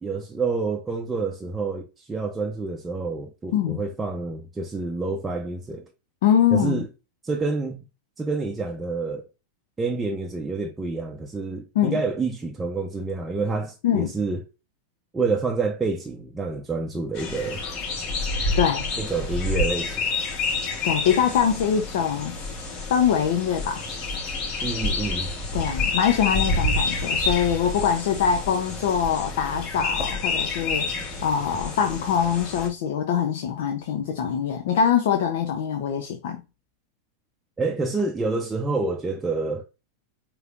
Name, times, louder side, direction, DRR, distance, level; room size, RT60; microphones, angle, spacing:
voice 1, 0.0-5.8 6.5-6.9 7.2-7.8 8.2-9.2 9.8-14.4 15.1-17.6 19.0-20.1 24.6-25.3 37.6-39.6, right 3 dB, 15° right, 0.6 m, -28 dB
voice 2, 6.2-6.8 11.7-12.0 13.8-14.1 18.6-18.8 20.8-22.4 22.9-23.8 25.5-30.9 31.2-36.4, left 8 dB, 65° left, 0.6 m, -23 dB
sound 1, 17.1-32.7, left 3 dB, 45° left, 2.4 m, -28 dB
4.8 x 3.1 x 2.5 m
hypercardioid pair, 95°, 0 cm